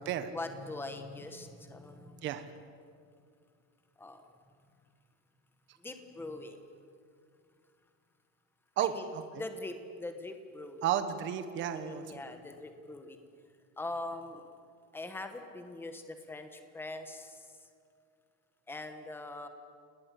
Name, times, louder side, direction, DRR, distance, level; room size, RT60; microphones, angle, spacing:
voice 1, 0.3-2.3 4.0-4.3 5.8-6.6 8.8-10.9 11.7-13.2 13.8-14.5 14.9-17.7 18.7-19.5, left 2 dB, 5° left, 7 dB, 1.3 m, -42 dB
voice 2, 8.8-9.2 10.8-12.0, right 10 dB, 30° right, 10 dB, 1.1 m, -32 dB
29.5 x 19.5 x 8.3 m, 2.3 s
cardioid pair, 180°, 39 cm